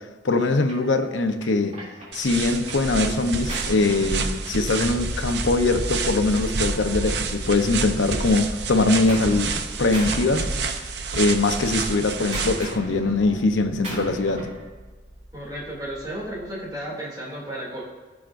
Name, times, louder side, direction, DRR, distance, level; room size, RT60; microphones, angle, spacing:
voice 1, 0.2-1.8 2.1-9.5 9.8-10.5 11.1-14.5, left 3 dB, 85° left, 6 dB, 0.8 m, -22 dB
Gunshot gunfire, 0.7-0.9 1.4-2.9 3.2-4.9 5.8-7.7 8.0-9.6 9.9-11.1 11.4-14.7, right 1 dB, 35° right, 2.8 m, -39 dB
sound 1, 2.1-12.7, right 4 dB, 60° right, 0.7 m, -29 dB
sound 2, 4.9-16.8, equal, 50° left, 1.7 m, -38 dB
voice 2, 15.3-17.8, right 1 dB, 20° right, -5 dB, 2.6 m, -33 dB
17.0 x 6.1 x 2.6 m, 1.4 s
head